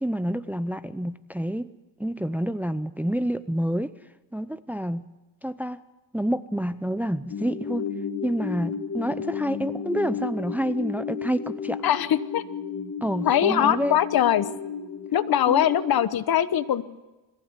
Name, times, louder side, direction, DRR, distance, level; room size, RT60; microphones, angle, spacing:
voice 1, 0.0-1.7 2.0-3.9 4.3-5.0 5.4-5.8 6.1-7.8 8.2-11.8 13.0-14.0 15.5-15.6, equal, 5° right, 13 dB, 0.6 m, -28 dB
sound 1, 7.3-16.1, left 6 dB, 40° left, 1.7 m, -33 dB
voice 2, 11.8-12.4 13.2-14.5 15.1-16.8, left 10 dB, 55° left, 14 dB, 1.2 m, -22 dB
22.0 x 15.5 x 8.2 m, 1.1 s
cardioid pair, 115°, 42 cm